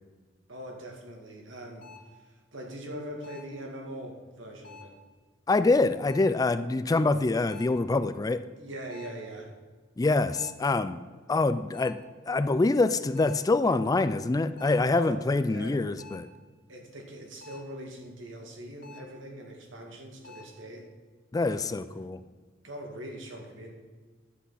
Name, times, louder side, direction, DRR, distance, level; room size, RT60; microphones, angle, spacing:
voice 1, 0.5-5.0 8.6-9.5 14.9-15.8 16.7-20.9 21.4-21.8 22.6-23.7, right 1 dB, 75° right, 2 dB, 2.1 m, -42 dB
sound 1, 1.8-2.2 3.2-3.6 4.6-5.0 6.1-6.5 7.5-7.8 8.9-9.3 10.3-10.7 11.7-12.1 13.1-13.5 14.6-14.9 16.0-16.4 17.4-17.8 18.8-19.2 20.2-20.5, left 4 dB, 55° left, 2.0 m, -50 dB
voice 2, 5.5-8.4 10.0-11.0 11.3-12.0 12.3-16.3 21.3-22.2, left 3 dB, 20° left, 13 dB, 0.3 m, -25 dB
10.5 x 8.2 x 5.7 m, 1.4 s
head